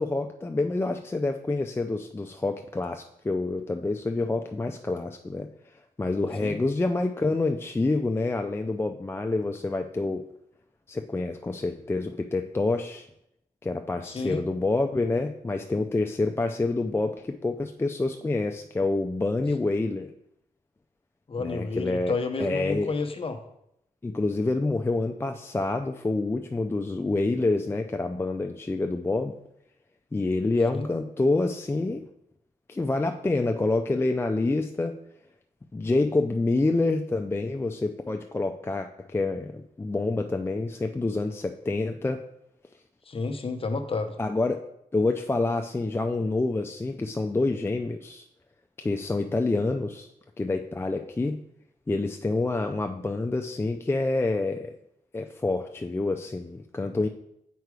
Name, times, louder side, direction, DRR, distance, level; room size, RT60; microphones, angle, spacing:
voice 1, 0.0-5.5 6.0-10.3 10.9-13.1 13.6-20.1 21.4-22.1 22.4-22.9 24.0-29.3 30.1-32.0 32.7-35.0 35.7-42.2 44.2-44.6 44.9-48.3 48.8-50.1 50.4-51.4 51.9-54.7 55.1-57.1, left 2 dB, 15° left, 5 dB, 0.4 m, -27 dB
voice 2, 14.1-14.4 21.3-23.4 30.7-30.9 43.1-44.1, left 3 dB, 40° left, 6 dB, 0.9 m, -30 dB
8.1 x 4.8 x 4.7 m, 0.79 s
wide cardioid pair, 115°, 14 cm